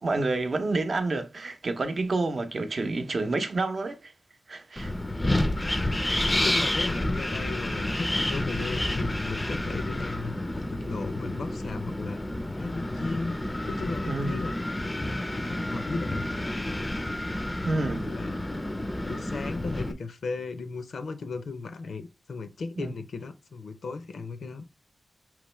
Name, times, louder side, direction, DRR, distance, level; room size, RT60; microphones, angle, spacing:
voice 1, 0.0-4.1 4.5-4.9 14.1-14.4 17.6-18.2 22.8-22.9, right 3 dB, 50° right, 0.7 m, -29 dB
Wind, 4.8-19.9, left 1 dB, 15° left, 0.5 m, -30 dB
voice 2, 6.3-12.2 12.6-14.5 15.3-16.5 17.8-18.4 19.0-24.7, left 4 dB, 80° left, 0.7 m, -36 dB
5.1 x 3.0 x 3.2 m
wide cardioid pair, 95°, 0 cm